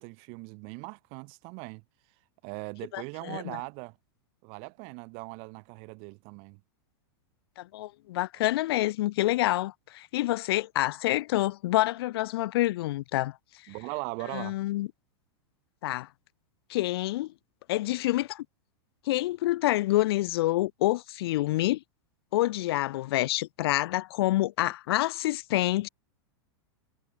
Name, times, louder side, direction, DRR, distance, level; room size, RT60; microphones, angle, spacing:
voice 1, 0.0-1.8 2.4-4.0 4.4-6.6 13.7-14.6, right 36 dB, 45° right, 1.7 m, -40 dB
voice 2, 2.9-3.6 7.6-13.4 14.3-14.9 15.8-16.1 16.7-17.3 17.7-18.4 19.1-21.8 22.3-25.9, left 16 dB, 65° left, 0.5 m, -27 dB
supercardioid pair, 140°, 14 cm